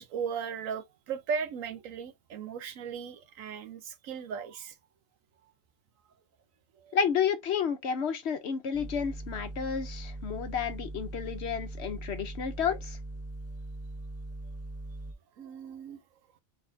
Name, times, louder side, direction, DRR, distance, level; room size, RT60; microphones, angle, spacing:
voice 1, 0.0-4.7 6.8-7.0 15.4-16.0, right 6 dB, 80° right, 1.1 m, -37 dB
voice 2, 6.9-13.0, left 7 dB, 60° left, 1.0 m, -31 dB
sound 1, 8.7-15.1, right 1 dB, 20° right, 0.4 m, -41 dB
4.1 x 3.6 x 2.6 m
omnidirectional pair, 1.4 m